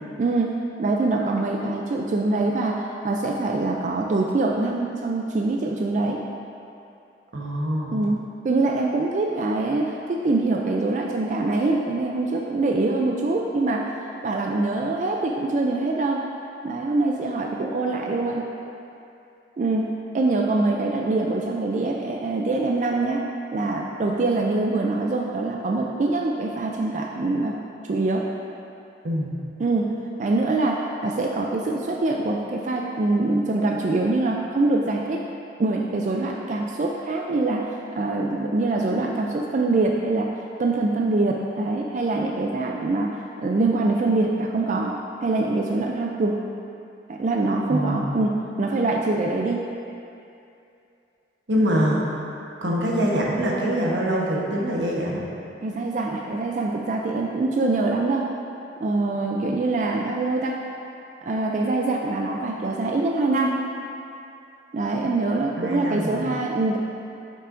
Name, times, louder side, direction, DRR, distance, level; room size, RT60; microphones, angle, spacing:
voice 1, 0.2-6.2 7.9-13.9 14.2-16.2 16.6-18.5 19.6-23.2 23.5-27.6 27.9-28.3 29.6-29.9 30.2-35.2 35.6-40.3 40.6-46.4 47.1-49.6 51.6-51.9 55.6-58.3 58.8-60.6 61.2-63.6 64.7-66.8, right 2 dB, 40° right, 0 dB, 0.3 m, -24 dB
voice 2, 7.3-8.0 29.0-29.3 47.7-48.1 51.5-52.0 52.6-55.2 65.6-66.2, equal, 90° right, -3 dB, 1.1 m, -24 dB
8.4 x 5.5 x 2.6 m, 2.6 s
head